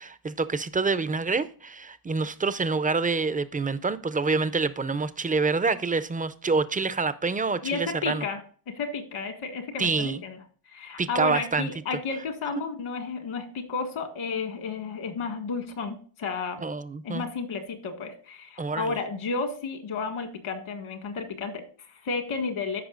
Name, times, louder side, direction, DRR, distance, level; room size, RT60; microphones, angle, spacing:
voice 1, 0.0-8.2 9.8-10.2 11.0-11.7 16.6-17.2 18.6-18.9, right 4 dB, 20° right, 0.4 m, -27 dB
voice 2, 7.6-8.4 8.7-10.4 10.7-16.6 17.0-22.8, left 4 dB, 75° left, 1.9 m, -32 dB
14.5 x 5.5 x 2.4 m
wide cardioid pair, 145°, 49 cm